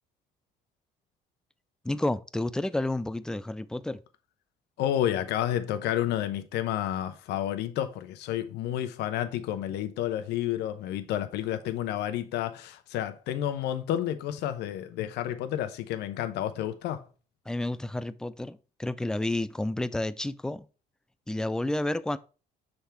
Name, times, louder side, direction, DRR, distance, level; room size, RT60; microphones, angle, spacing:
voice 1, 1.8-4.0 17.5-20.6 21.3-22.2, left 1 dB, 5° left, 0.3 m, -30 dB
voice 2, 4.8-17.0, left 11 dB, 80° left, 0.8 m, -30 dB
6.4 x 3.5 x 4.4 m
cardioid pair, 110°, 17 cm